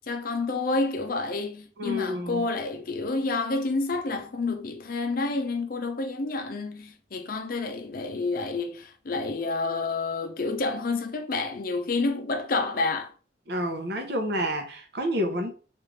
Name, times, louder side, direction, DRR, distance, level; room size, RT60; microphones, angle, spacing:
voice 1, 0.0-13.1, left 3 dB, 50° left, 0.5 m, -29 dB
voice 2, 1.8-2.4 13.5-15.5, equal, 65° right, 0.7 m, -29 dB
3.2 x 2.5 x 3.1 m
head